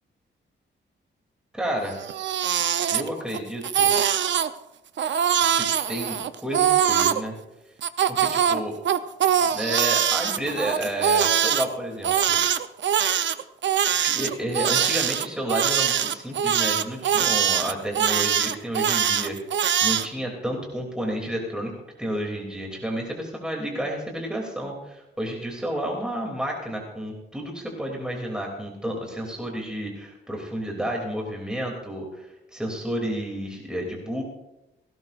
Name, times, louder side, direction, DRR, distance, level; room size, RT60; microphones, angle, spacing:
voice 1, 1.5-2.0 2.9-3.9 5.6-7.3 8.1-8.8 9.5-12.4 14.0-19.4 19.8-21.7 22.0-34.2, right 1 dB, 5° right, 0 dB, 2.8 m, -31 dB
Crying sobbing, 1.9-3.4 3.6-4.5 5.0-7.2 7.8-11.7 12.0-20.1, right 9 dB, 70° right, 0.7 m, -22 dB
18.0 x 16.5 x 2.5 m, 0.92 s
wide cardioid pair, 135°, 20 cm